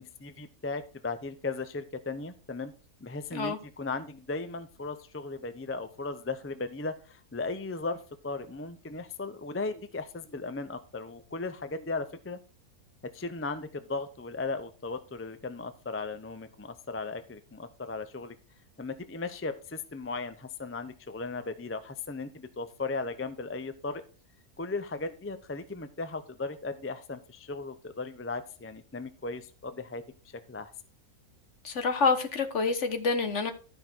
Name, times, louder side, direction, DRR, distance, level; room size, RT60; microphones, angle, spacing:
voice 1, 0.0-2.7 3.0-12.4 13.0-18.4 18.8-24.0 24.6-30.0 30.5-30.7, left 3 dB, 20° left, 0.4 m, -36 dB
voice 2, 31.6-33.5, left 4 dB, 55° left, 1.4 m, -27 dB
12.5 x 5.6 x 4.5 m
omnidirectional pair, 1.6 m